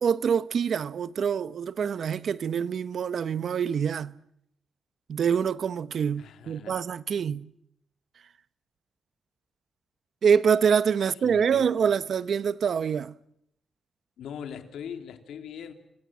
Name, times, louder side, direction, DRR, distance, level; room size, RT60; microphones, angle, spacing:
voice 1, 0.0-4.1 5.1-7.5 10.2-13.1, right 7 dB, 65° right, 0.9 m, -25 dB
voice 2, 6.2-6.8 11.0-11.9 14.2-15.7, left 8 dB, 90° left, 2.9 m, -41 dB
29.5 x 23.5 x 7.4 m
cardioid pair, 80°, 0 cm